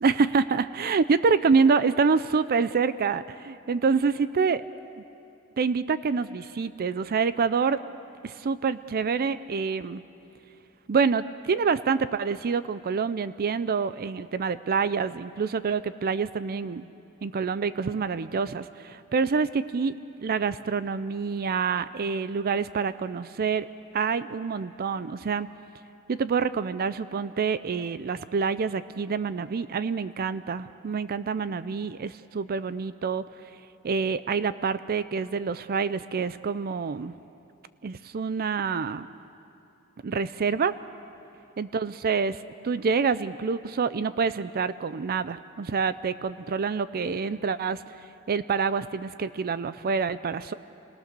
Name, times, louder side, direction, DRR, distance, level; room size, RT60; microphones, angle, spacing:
voice 1, 0.0-4.6 5.6-7.8 8.2-10.0 10.9-16.9 17.2-23.7 23.9-25.5 26.1-33.2 33.8-37.1 37.8-39.1 40.0-40.8 41.6-48.0 48.3-50.5, right 5 dB, 45° right, 14 dB, 0.4 m, -27 dB
28.5 x 19.0 x 6.8 m, 2.8 s
head